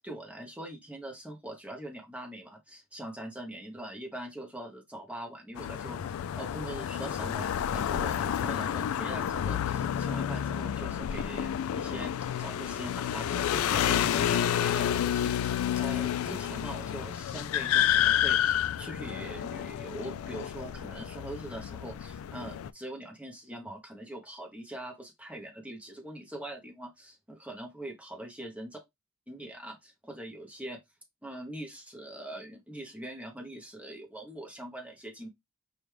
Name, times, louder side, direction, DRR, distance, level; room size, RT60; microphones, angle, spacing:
voice 1, 0.0-12.1 12.4-28.8 29.3-30.8 31.2-35.3, right 1 dB, 5° right, 0.9 m, -42 dB
sound 1, 5.6-22.7, left 10 dB, 85° left, 0.3 m, -30 dB
5.0 x 2.4 x 3.1 m
head